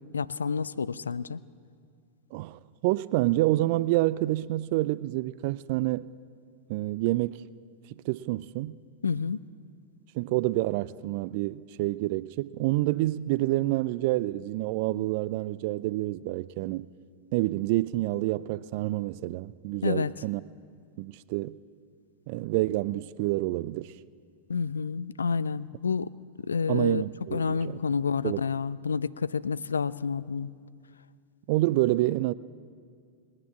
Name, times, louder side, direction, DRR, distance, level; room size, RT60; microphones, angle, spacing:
voice 1, 0.1-1.4 9.0-9.4 19.8-20.1 24.5-26.1 26.5-27.0 27.3-30.5, left 5 dB, 85° left, 0.3 m, -29 dB
voice 2, 2.3-6.0 6.7-7.5 8.1-8.7 10.1-16.9 17.3-20.4 21.0-21.5 22.3-23.9 26.7-27.8 28.2-28.4 31.5-32.3, right 17 dB, 55° right, 0.3 m, -28 dB
20.0 x 9.7 x 7.3 m
hypercardioid pair, 95°, 0 cm